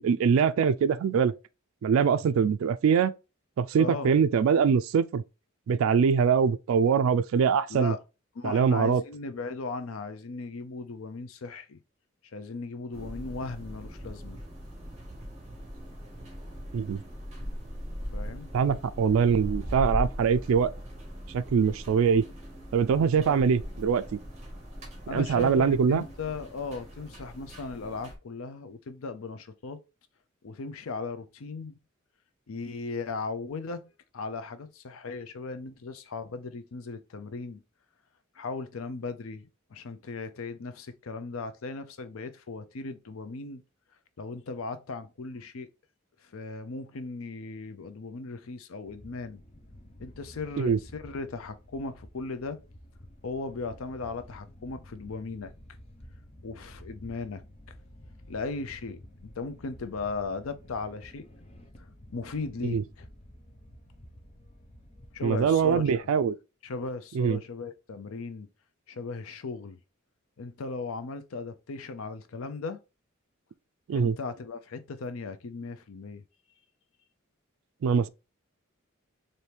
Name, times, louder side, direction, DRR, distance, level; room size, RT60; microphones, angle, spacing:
voice 1, 0.0-1.3 1.8-3.1 3.6-5.2 5.7-7.9 8.4-9.0 16.7-17.0 18.5-20.7 21.3-22.2 22.7-24.2 25.1-26.1 50.6-50.8 62.6-62.8 65.2-66.4 67.1-67.4 73.9-74.2 77.8-78.1, right 6 dB, 75° right, 0.3 m, -23 dB
voice 2, 3.8-4.1 7.7-8.0 8.4-11.8 12.3-14.4 18.1-18.5 23.1-23.5 25.1-29.8 30.4-31.7 32.5-37.6 38.4-43.6 44.2-45.7 46.2-49.4 50.0-52.6 53.2-55.5 56.4-57.8 58.3-61.3 61.8-61.9 62.1-63.1 65.1-66.0 66.6-68.5 68.9-69.8 70.4-72.8 73.9-76.2, left 4 dB, 80° left, 0.5 m, -37 dB
sound 1, 12.9-28.2, equal, 30° right, 1.4 m, -39 dB
sound 2, 48.8-66.0, equal, 30° left, 0.7 m, -51 dB
4.3 x 2.6 x 3.3 m
head